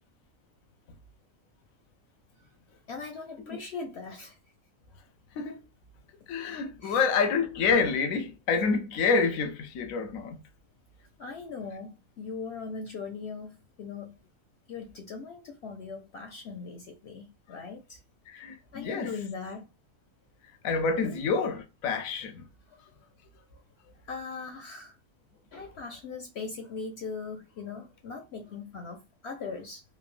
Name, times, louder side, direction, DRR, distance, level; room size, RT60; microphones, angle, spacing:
voice 1, 2.9-4.4 6.8-7.0 11.2-14.1 14.7-18.0 18.7-19.7 21.0-21.2 22.7-22.8 24.1-24.9 25.5-29.8, left 4 dB, 65° left, 0.7 m, -40 dB
voice 2, 6.3-10.4 18.3-19.1 20.6-22.4, left 5 dB, 90° left, 1.0 m, -28 dB
3.2 x 2.0 x 2.4 m
omnidirectional pair, 1.4 m